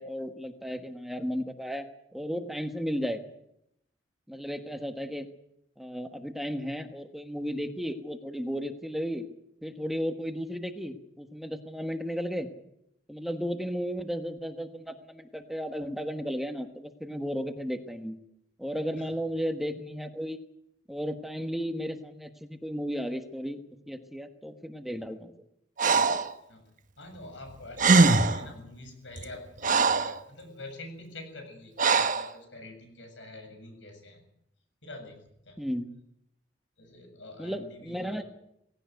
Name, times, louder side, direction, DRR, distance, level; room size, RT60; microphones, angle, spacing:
voice 1, 0.0-1.9 2.1-3.2 4.3-5.3 5.8-9.3 9.6-12.5 13.1-18.2 18.6-20.4 20.9-23.6 23.9-25.3 35.6-35.9 37.4-38.2, equal, ahead, 7 dB, 1.3 m, -34 dB
Breathing, 25.8-26.3 27.5-27.6 27.8-28.5 29.2-30.2 31.8-32.3, right 4 dB, 45° right, 1.2 m, -22 dB
voice 2, 27.0-34.2 34.8-35.6 36.8-38.2, left 2 dB, 90° left, 5 dB, 7.6 m, -46 dB
18.0 x 17.0 x 9.3 m, 0.78 s
head